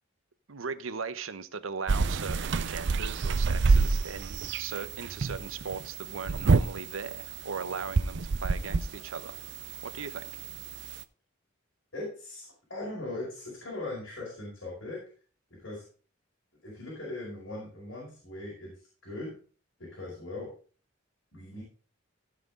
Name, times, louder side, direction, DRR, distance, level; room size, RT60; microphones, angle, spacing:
voice 1, 0.5-9.4 9.8-10.3, right 5 dB, 85° right, 0.8 m, -38 dB
sound 1, 1.9-11.0, right 4 dB, 60° right, 0.6 m, -28 dB
voice 2, 11.9-15.0 15.6-15.8 16.6-19.4 19.8-20.5 21.3-21.6, left 2 dB, 70° left, 5.3 m, -39 dB
16.5 x 6.0 x 3.7 m
head